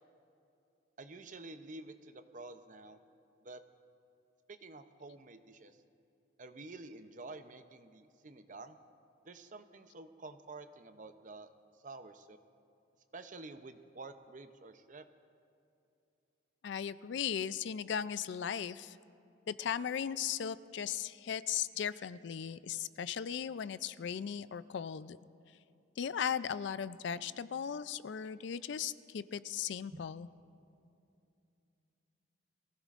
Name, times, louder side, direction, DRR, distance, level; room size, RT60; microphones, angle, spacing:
voice 1, 1.0-3.0 3.4-3.6 4.5-5.8 6.4-8.8 9.2-11.5 11.8-12.4 13.1-15.1 29.9-30.0, right 3 dB, 40° right, 9 dB, 0.6 m, -49 dB
voice 2, 16.6-19.0 19.5-25.2 26.0-30.3, left 8 dB, 65° left, 16 dB, 0.4 m, -37 dB
23.0 x 16.0 x 2.5 m, 2.6 s
head